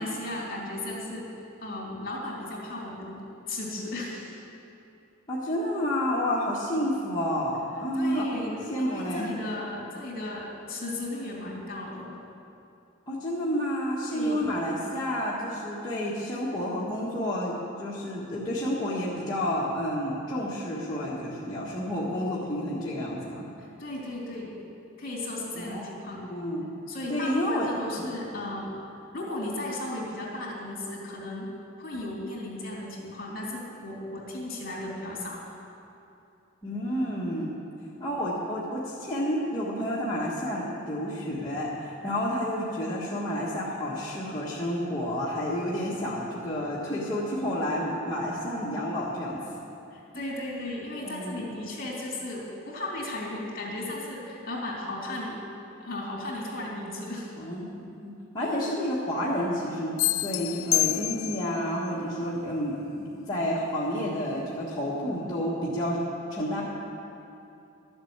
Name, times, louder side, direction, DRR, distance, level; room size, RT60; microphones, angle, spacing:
voice 1, 0.0-4.5 7.9-12.2 14.1-14.6 23.6-24.6 25.0-26.3 26.9-28.8 29.1-31.5 31.8-35.4 49.9-55.4 55.8-57.4, left 1 dB, 45° left, -3 dB, 3.3 m, -35 dB
voice 2, 5.3-8.3 8.7-9.3 13.1-23.4 25.5-25.9 26.1-26.7 27.1-27.7 28.0-28.1 36.6-37.5 38.0-49.4 51.0-51.6 57.4-66.0 66.3-66.6, equal, 20° left, -8 dB, 1.6 m, -30 dB
sound 1, 60.0-61.6, left 17 dB, 75° left, 0.3 m, -27 dB
12.5 x 8.0 x 8.1 m, 2.7 s
head